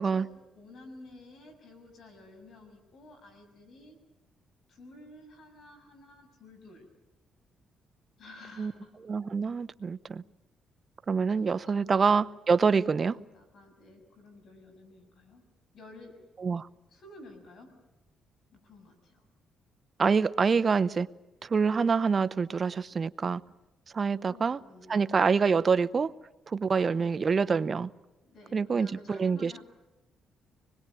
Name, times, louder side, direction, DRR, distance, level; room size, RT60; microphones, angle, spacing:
voice 1, 0.0-4.0 4.7-6.9 8.2-8.9 11.2-12.4 12.6-15.4 15.7-16.2 16.9-17.7 18.5-19.3 24.3-25.1 26.9-27.8 28.2-29.6, left 2 dB, 60° left, 6.7 m, -52 dB
voice 2, 9.1-10.2 11.1-13.2 16.4-16.7 20.0-21.1 21.4-23.4 23.9-24.6 24.9-26.1 26.5-27.9 28.5-29.6, right 5 dB, 40° right, 0.8 m, -26 dB
25.0 x 21.0 x 9.1 m
cardioid pair, 90°, 0 cm